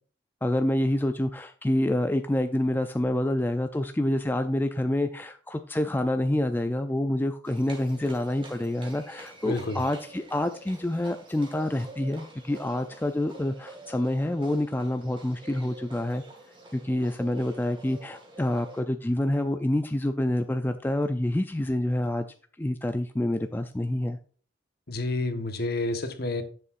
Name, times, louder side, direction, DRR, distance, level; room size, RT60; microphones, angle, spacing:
voice 1, 0.4-16.2 16.7-22.3 22.6-24.2, left 1 dB, 10° left, 0.4 m, -27 dB
Livestock farm animals working animals, 7.4-18.8, right 1 dB, 25° right, 2.3 m, -47 dB
voice 2, 9.4-9.8 24.9-26.4, left 2 dB, 55° left, 1.2 m, -29 dB
11.0 x 6.8 x 2.5 m
head